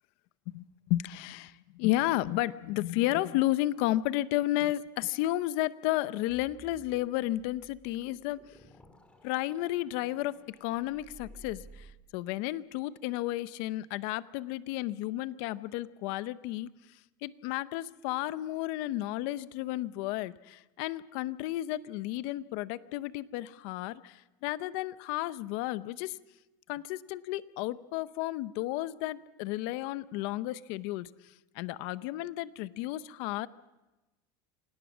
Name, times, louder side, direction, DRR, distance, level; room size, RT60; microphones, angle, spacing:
voice 1, 0.5-8.4 9.2-11.9 12.1-16.7 17.2-26.2 26.7-31.1 31.5-33.5, left 16 dB, 65° left, 16 dB, 0.7 m, -32 dB
sound 1, 6.3-11.9, equal, 10° left, 2.9 m, -55 dB
26.5 x 18.0 x 6.2 m, 1.1 s
supercardioid pair, 145°, 11 cm